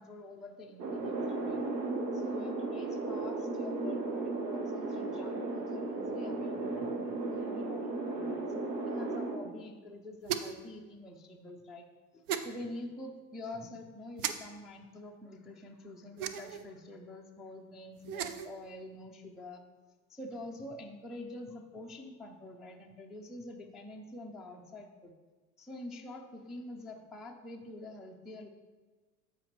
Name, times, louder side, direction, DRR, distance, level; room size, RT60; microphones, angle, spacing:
voice 1, 0.0-1.8 2.1-11.8 12.1-19.6 20.1-25.1 25.6-28.5, left 2 dB, ahead, -1 dB, 0.3 m, -46 dB
sound 1, 0.8-9.4, right 3 dB, 80° right, 1.2 m, -35 dB
sound 2, 10.2-10.7 12.3-12.5 14.2-14.3 16.2-16.6 18.0-18.5, right 9 dB, 60° right, 0.7 m, -35 dB
13.0 x 5.1 x 3.0 m, 1.3 s
hypercardioid pair, 85°, 49 cm